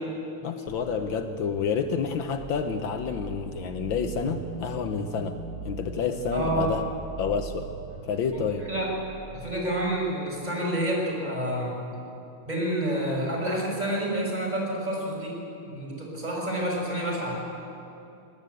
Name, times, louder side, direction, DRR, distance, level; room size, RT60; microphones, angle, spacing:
voice 1, 0.4-5.4 5.7-6.8 7.2-7.7 8.0-8.7, left 6 dB, 70° left, 7 dB, 1.6 m, -29 dB
sound 1, 0.7-9.8, right 5 dB, 50° right, 6.2 m, -40 dB
voice 2, 6.3-6.7 8.3-8.9 9.3-11.8 12.5-15.4 15.6-17.4, right 1 dB, 20° right, -1 dB, 5.5 m, -29 dB
21.5 x 18.0 x 9.3 m, 2.7 s
omnidirectional pair, 2.3 m